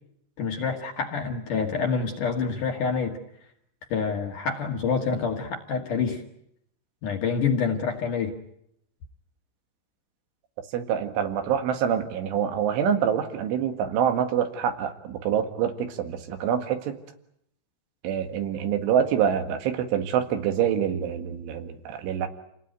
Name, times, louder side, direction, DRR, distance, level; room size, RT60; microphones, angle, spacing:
voice 1, 0.4-3.2 3.9-6.2 7.0-8.3, left 5 dB, 55° left, 3 dB, 2.6 m, -27 dB
voice 2, 10.7-17.0 18.0-22.3, right 8 dB, 80° right, 7 dB, 4.3 m, -26 dB
28.5 x 19.0 x 9.4 m, 0.75 s
omnidirectional pair, 5.5 m